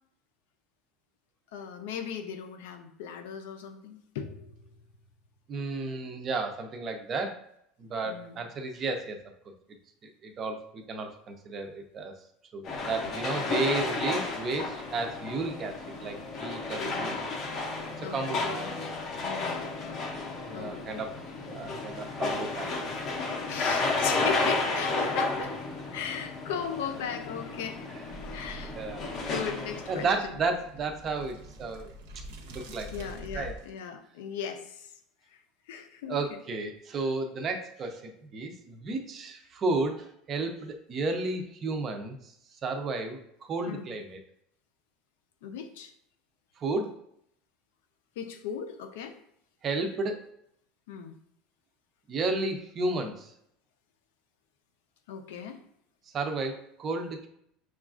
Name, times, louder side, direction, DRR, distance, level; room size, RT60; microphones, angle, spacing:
voice 1, 1.5-4.5 8.0-8.4 16.8-17.2 18.0-18.8 19.2-20.0 20.5-21.1 23.5-25.6 25.9-27.8 28.2-28.7 29.3-30.4 32.7-34.9 35.3-35.4 35.7-36.4 43.7-43.9 45.4-45.9 48.2-49.2 50.9-51.2 55.1-55.6, left 7 dB, 85° left, 7 dB, 0.5 m, -38 dB
voice 2, 5.5-7.4 7.8-9.2 10.0-12.1 12.5-17.1 18.0-18.5 20.5-22.7 23.8-24.3 28.7-29.1 29.9-31.9 32.5-32.9 33.3-33.6 36.1-42.3 42.6-43.2 43.5-44.2 46.6-47.0 49.6-50.2 52.1-53.3 56.1-57.3, right 3 dB, 25° right, 4 dB, 0.4 m, -33 dB
sound 1, 12.6-30.1, left 3 dB, 30° left, 0.5 m, -32 dB
sound 2, 28.1-33.8, right 1 dB, 75° right, 0.7 m, -45 dB
6.0 x 2.4 x 2.4 m, 0.72 s
cardioid pair, 180°, 0 cm